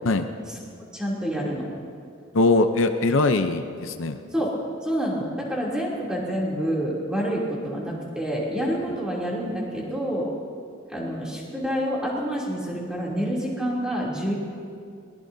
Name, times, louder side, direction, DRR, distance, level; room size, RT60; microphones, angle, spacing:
voice 1, 0.9-1.7 4.3-10.3 10.9-14.3, equal, 5° right, -5 dB, 2.9 m, -28 dB
voice 2, 2.3-4.2, left 2 dB, 70° left, 7 dB, 0.7 m, -21 dB
22.0 x 20.0 x 2.7 m, 2.3 s
head